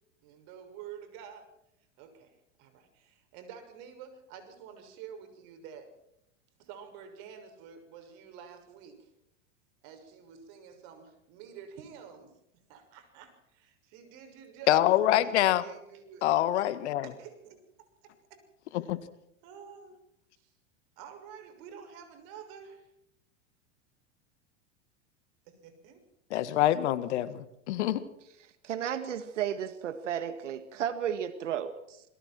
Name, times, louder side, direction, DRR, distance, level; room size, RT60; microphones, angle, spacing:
voice 1, 0.2-1.5 2.0-2.3 2.6-5.9 6.6-9.0 9.8-12.3 12.7-16.2 17.0-17.6 18.0-18.4 19.4-19.9 21.0-22.8 25.6-26.0, right 7 dB, 55° right, 7 dB, 6.7 m, -49 dB
voice 2, 14.7-15.6 16.2-17.1 18.7-19.0 26.3-28.1, left 13 dB, 70° left, 14 dB, 2.0 m, -25 dB
voice 3, 28.6-32.0, right 9 dB, 80° right, 11 dB, 1.8 m, -33 dB
28.0 x 22.5 x 4.6 m, 0.82 s
hypercardioid pair, 100°, 36 cm